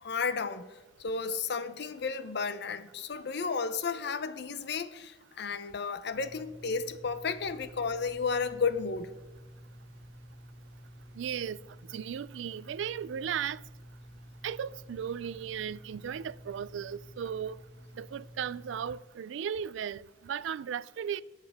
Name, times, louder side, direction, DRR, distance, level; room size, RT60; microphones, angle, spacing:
voice 1, 0.0-0.7 1.0-9.1, left 5 dB, 60° left, 0.7 m, -33 dB
sound 1, 6.1-19.0, equal, 60° right, 2.2 m, -51 dB
voice 2, 11.2-11.6 11.9-13.6 14.4-17.6 18.0-21.2, right 8 dB, 80° right, 0.3 m, -36 dB
17.5 x 7.4 x 3.5 m
head